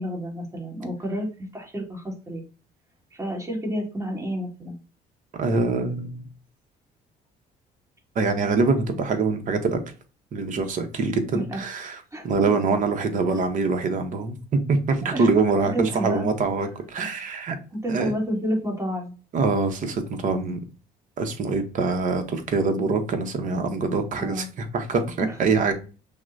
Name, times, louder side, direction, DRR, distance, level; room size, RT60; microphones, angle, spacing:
voice 1, 0.0-2.4 3.1-4.8 11.3-11.6 12.1-12.3 15.1-15.3 15.7-16.3 17.8-19.1 24.2-24.5 25.2-25.4, equal, 20° right, 1.8 m, -30 dB
voice 2, 5.4-6.2 8.1-9.8 10.3-17.6 17.9-18.1 19.3-20.6 21.2-25.7, right 4 dB, 50° right, 0.9 m, -24 dB
5.9 x 2.1 x 2.5 m
cardioid pair, 110°, 17 cm